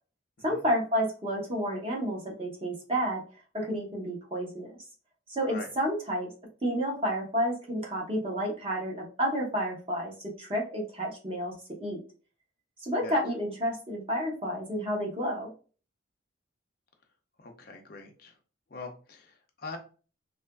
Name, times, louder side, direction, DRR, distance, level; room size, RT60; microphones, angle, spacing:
voice 1, 0.4-3.2 3.5-4.7 5.3-6.3 6.6-12.0 12.8-15.5, equal, 30° right, -2 dB, 0.8 m, -30 dB
voice 2, 17.4-18.3 18.7-19.8, left 3 dB, 50° left, 3 dB, 0.5 m, -43 dB
2.7 x 2.4 x 2.2 m, 0.37 s
head